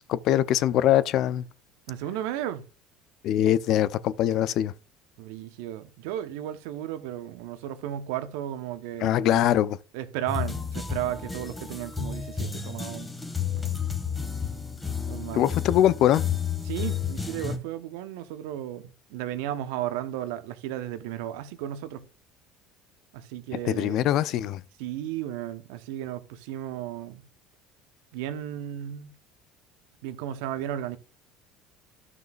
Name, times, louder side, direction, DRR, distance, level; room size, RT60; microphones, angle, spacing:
voice 1, 0.1-1.4 3.2-4.7 9.0-9.8 15.3-16.2 23.6-24.6, left 12 dB, 60° left, 0.6 m, -22 dB
voice 2, 1.9-2.7 5.2-9.5 9.9-13.1 13.5-13.8 15.1-15.5 16.6-22.0 23.1-24.0 24.8-27.2 28.1-29.1 30.0-31.0, right 11 dB, 70° right, 1.0 m, -34 dB
sound 1, 10.3-17.6, left 7 dB, 15° left, 1.9 m, -31 dB
13.5 x 6.1 x 2.5 m
hypercardioid pair, 70°, 0 cm